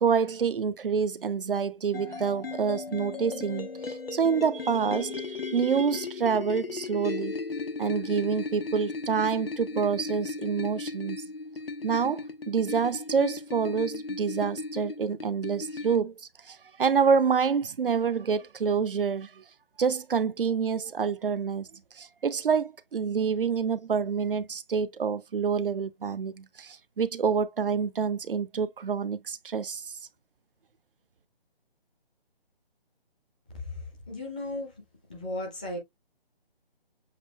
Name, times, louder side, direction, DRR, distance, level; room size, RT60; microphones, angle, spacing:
voice 1, 0.0-7.3 7.8-11.2 11.8-16.1 16.5-19.4 19.8-21.7 22.0-29.8, right 6 dB, 65° right, 0.5 m, -27 dB
sound 1, 1.9-16.0, left 4 dB, 70° left, 1.1 m, -36 dB
voice 2, 33.5-34.8 35.1-35.8, left 2 dB, 10° left, 0.5 m, -36 dB
7.3 x 2.5 x 2.2 m
figure-of-eight pair, 150°, 30 cm